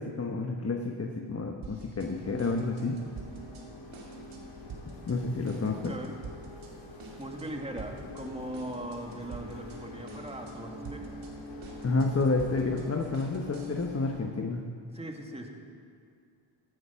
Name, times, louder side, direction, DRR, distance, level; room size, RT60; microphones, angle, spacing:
voice 1, 0.0-3.0 5.1-5.9 11.8-14.6, left 3 dB, 30° left, 3 dB, 1.2 m, -30 dB
sound 1, 1.6-2.1 2.4-3.6 3.9-4.4 4.7-5.2 5.5-6.7 7.0-7.5 7.8-8.2 8.5-9.8 10.1-10.5 10.8-13.9, right 5 dB, 80° right, 2.3 m, -47 dB
sound 2, 2.0-14.2, left 2 dB, 70° left, 2.6 m, -45 dB
voice 2, 5.9-6.2 7.2-11.2 14.9-15.5, right 1 dB, 10° right, 2 dB, 2.1 m, -39 dB
16.0 x 9.4 x 5.8 m, 2.3 s
cardioid pair, 60°, 48 cm